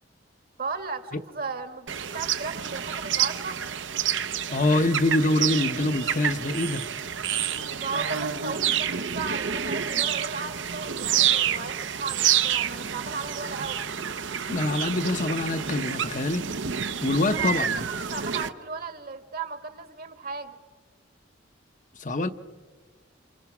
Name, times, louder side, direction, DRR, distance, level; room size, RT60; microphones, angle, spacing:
voice 1, 0.6-3.6 7.7-13.8 17.2-20.6, right 4 dB, 50° right, 9 dB, 1.6 m, -36 dB
sound 1, 1.9-18.5, right 8 dB, 80° right, 0.9 m, -28 dB
voice 2, 4.5-6.8 14.5-16.5 17.0-17.8 22.0-22.3, left 2 dB, 45° left, 9 dB, 0.8 m, -25 dB
30.0 x 27.5 x 6.0 m, 1.5 s
head